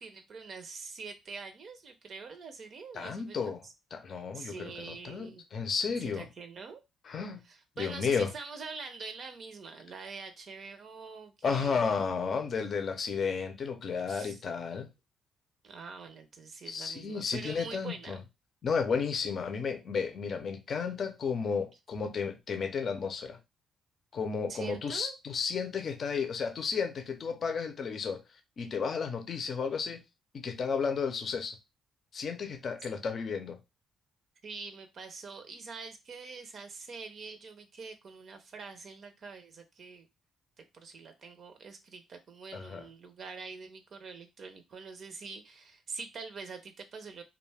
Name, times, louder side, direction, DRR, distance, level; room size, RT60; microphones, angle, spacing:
voice 1, 0.0-3.7 4.1-5.4 6.1-6.8 7.4-12.0 14.1-14.4 15.6-18.2 24.5-25.1 34.4-40.1 40.7-47.2, right 4 dB, 55° right, 0.5 m, -45 dB
voice 2, 2.9-3.6 3.9-6.3 7.1-7.4 7.8-8.3 11.4-14.9 16.7-18.2 18.6-23.4 24.1-28.2 28.6-30.0 30.3-31.6 32.1-33.6 42.5-42.8, left 5 dB, 50° left, 0.5 m, -33 dB
2.3 x 2.2 x 3.3 m
cardioid pair, 90°, 0 cm